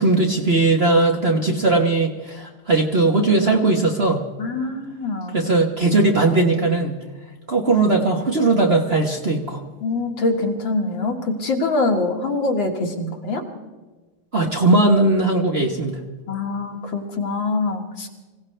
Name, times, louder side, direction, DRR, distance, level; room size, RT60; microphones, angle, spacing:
voice 1, 0.0-4.2 5.3-7.0 7.5-9.6 14.3-16.0, right 2 dB, 35° right, 1 dB, 1.2 m, -18 dB
voice 2, 4.4-5.4 9.8-13.4 16.3-18.1, left 3 dB, 65° left, 1 dB, 2.5 m, -24 dB
25.5 x 16.5 x 3.3 m, 1.2 s
omnidirectional pair, 2.3 m